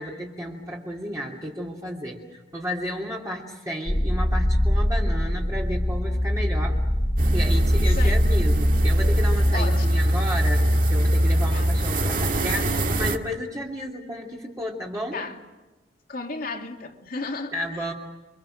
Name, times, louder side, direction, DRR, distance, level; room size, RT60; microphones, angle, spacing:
voice 1, 0.0-6.8 7.3-15.2 17.5-17.9, equal, 20° right, 3.0 m, -32 dB
sound 1, 3.9-9.5, equal, 35° left, 2.6 m, -23 dB
sound 2, 7.2-13.2, right 1 dB, 50° right, 2.0 m, -22 dB
voice 2, 7.8-8.2 9.5-10.0 11.5-11.7 15.1-15.4 16.1-17.8, left 3 dB, 55° left, 2.5 m, -34 dB
29.5 x 25.0 x 6.5 m
head